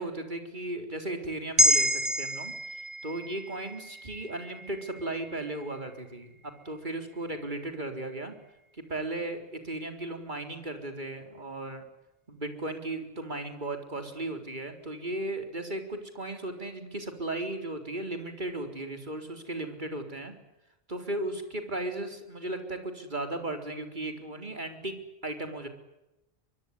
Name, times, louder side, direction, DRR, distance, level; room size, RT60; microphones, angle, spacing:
voice 1, 0.0-8.3 8.7-11.8 12.3-20.3 20.9-24.9 25.2-25.7, right 2 dB, 50° right, 6 dB, 4.4 m, -36 dB
sound 1, 1.6-6.1 6.5-6.6, equal, 30° right, 3.0 m, -29 dB
24.0 x 23.5 x 9.8 m, 0.93 s
omnidirectional pair, 1.0 m